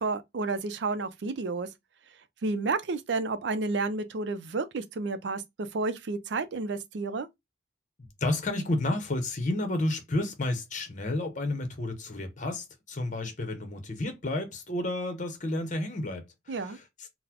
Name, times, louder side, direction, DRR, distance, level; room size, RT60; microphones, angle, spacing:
voice 1, 0.0-1.7 2.4-5.4 5.7-7.3 16.5-16.8, right 3 dB, 70° right, 0.5 m, -31 dB
voice 2, 8.0-17.1, left 1 dB, 45° left, 0.8 m, -31 dB
3.9 x 2.1 x 2.8 m
head